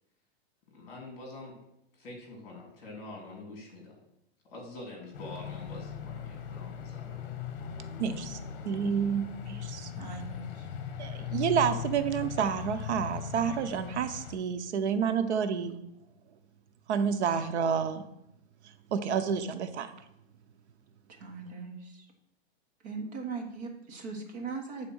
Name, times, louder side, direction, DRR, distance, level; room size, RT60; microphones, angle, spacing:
voice 1, 0.7-1.6 1.9-3.9 4.5-7.3, left 2 dB, 30° left, 0 dB, 3.0 m, -45 dB
sound 1, 5.1-14.3, left 7 dB, 55° left, 1.0 m, -39 dB
voice 2, 8.0-8.4 8.6-9.9 11.0-15.8 16.9-18.0 18.6-19.9, right 7 dB, 85° right, 9 dB, 0.8 m, -29 dB
voice 3, 10.0-10.7 11.0-11.2 21.2-22.1 22.8-24.9, right 4 dB, 40° right, 2 dB, 1.4 m, -40 dB
7.8 x 4.2 x 6.3 m, 0.82 s
supercardioid pair, 170°, 33 cm